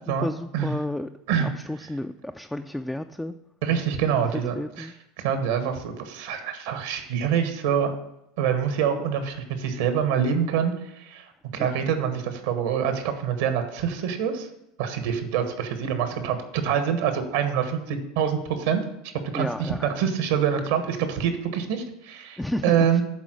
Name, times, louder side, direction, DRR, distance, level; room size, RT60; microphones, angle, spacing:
voice 1, 0.1-1.1 1.4-3.3 4.6-4.9 11.6-11.7 19.3-20.0 22.4-23.0, left 1 dB, 5° left, 7 dB, 0.3 m, -32 dB
voice 2, 3.6-4.9 5.2-7.9 8.4-14.5 14.8-18.8 19.3-23.0, right 8 dB, 80° right, 7 dB, 1.2 m, -25 dB
9.1 x 3.7 x 6.3 m, 0.84 s
supercardioid pair, 100°, 0 cm